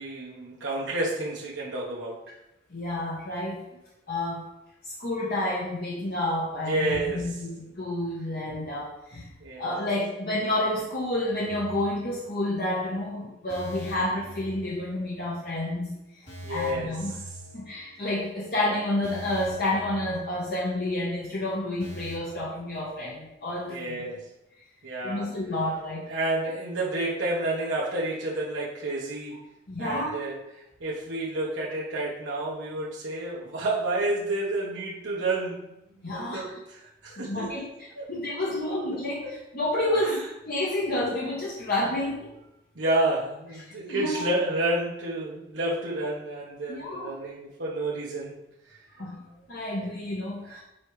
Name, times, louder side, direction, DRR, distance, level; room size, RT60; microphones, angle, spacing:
voice 1, 0.0-2.2 6.6-7.4 9.4-9.9 16.4-17.3 23.7-24.2 24.8-25.3 26.1-29.4 29.8-30.4 30.8-35.7 36.0-37.5 37.9-38.1 38.9-39.3 39.9-40.2 42.7-48.4 49.3-49.4 49.7-49.8 50.4-50.6, right 2 dB, 85° right, -5 dB, 1.1 m, -30 dB
voice 2, 2.7-3.6 4.1-4.5 4.8-9.3 9.6-15.9 16.5-17.1 17.5-24.1 25.0-26.1 29.7-30.1 36.0-36.6 37.1-42.3 43.6-44.3 46.7-47.1 49.0-49.2 49.5-50.6, left 1 dB, 55° left, -5 dB, 1.0 m, -30 dB
sound 1, 11.4-12.7 12.9-13.1 13.5-15.4 15.7-15.8 16.3-18.2 18.5-18.6 19.0-21.0 21.2-21.3 21.8-22.2, right 1 dB, 85° left, 2.5 m, -44 dB
7.4 x 4.7 x 3.2 m, 0.90 s
head